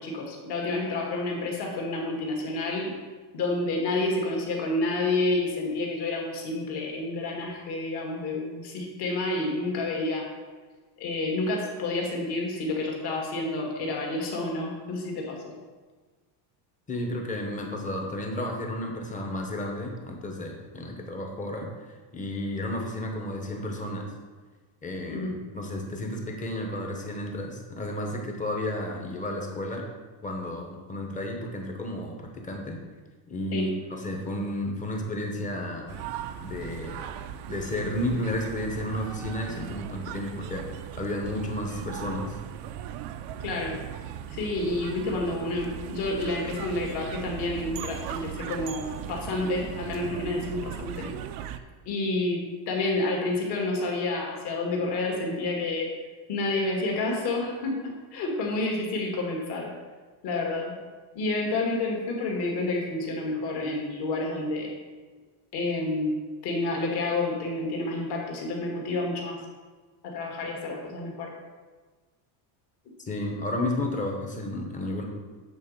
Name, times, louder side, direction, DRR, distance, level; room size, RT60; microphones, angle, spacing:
voice 1, 0.0-2.9 3.3-10.3 11.0-15.5 25.1-25.3 33.5-33.7 43.4-43.8 44.3-51.1 51.9-55.9 56.3-59.7 60.2-60.8 61.1-64.8 65.5-66.2 66.4-69.4 70.0-71.3, left 2 dB, 50° left, 0 dB, 2.0 m, -29 dB
voice 2, 16.9-21.9 22.1-24.0 24.8-29.8 30.2-32.8 33.3-36.0 36.4-37.0 37.5-40.6 40.9-42.3 73.1-75.0, left 1 dB, 15° left, 1 dB, 0.9 m, -32 dB
sound 1, 35.9-51.6, right 10 dB, 85° right, 0.7 m, -38 dB
8.4 x 4.1 x 6.6 m, 1.4 s
cardioid pair, 170°, 50 cm